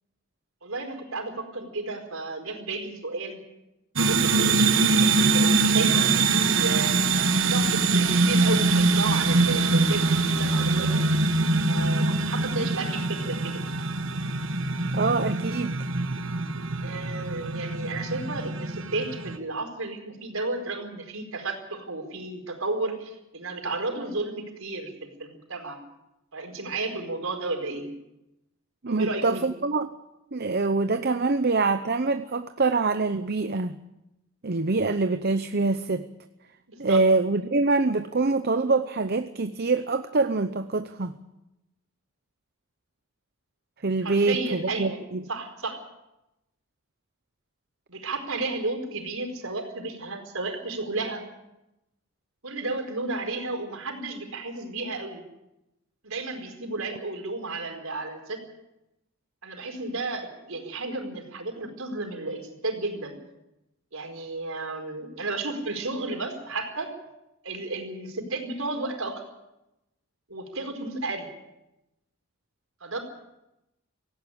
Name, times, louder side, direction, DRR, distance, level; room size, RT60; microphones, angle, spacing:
voice 1, 0.6-3.4 4.0-7.0 7.4-11.0 11.7-13.6 16.8-25.8 26.3-27.9 28.9-29.5 36.7-37.0 44.0-45.0 45.3-45.8 47.9-51.2 52.4-55.2 56.0-58.4 59.4-63.2 63.9-66.9 67.4-69.2 70.3-71.3 72.8-73.0, right 2 dB, 85° right, 4 dB, 4.6 m, -33 dB
sound 1, 4.0-19.4, right 3 dB, 65° right, 1.4 m, -23 dB
sound 2, 5.3-11.1, left 2 dB, 60° left, 4.2 m, -46 dB
voice 2, 14.9-15.8 28.8-29.9 30.3-33.8 34.4-36.1 36.8-41.1 43.8-45.2, right 3 dB, 50° right, 10 dB, 0.8 m, -25 dB
18.0 x 16.0 x 9.9 m, 0.91 s
head